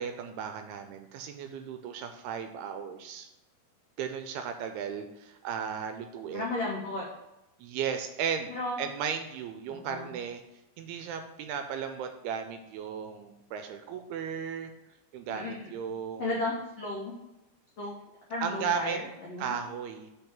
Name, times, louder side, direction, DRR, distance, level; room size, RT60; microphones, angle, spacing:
voice 1, 0.0-3.3 4.0-6.5 7.6-10.4 10.8-14.7 15.1-16.3 18.4-19.0 19.4-20.1, right 7 dB, 85° right, 7 dB, 2.4 m, -35 dB
voice 2, 6.3-7.0 8.5-8.8 9.7-10.1 15.3-15.6 16.2-17.1 17.8-17.9 18.3-19.6, left 2 dB, 80° left, -5 dB, 1.4 m, -34 dB
6.1 x 3.5 x 5.7 m, 0.95 s
omnidirectional pair, 4.8 m